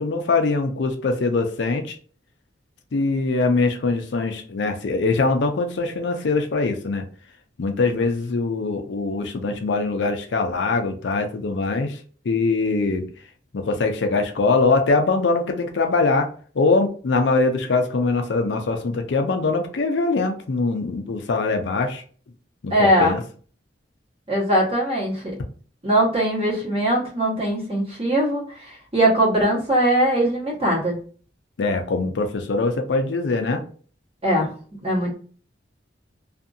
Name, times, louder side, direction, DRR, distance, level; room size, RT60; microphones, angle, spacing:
voice 1, 0.0-2.0 2.9-7.1 7.6-13.1 13.5-16.3 16.5-22.0 22.6-23.2 31.6-33.6, left 3 dB, 75° left, 0.5 m, -22 dB
voice 2, 22.7-23.1 24.3-25.2 25.8-31.0 34.2-34.5 34.8-35.1, right 1 dB, 35° right, 1.2 m, -21 dB
2.6 x 2.5 x 2.5 m
head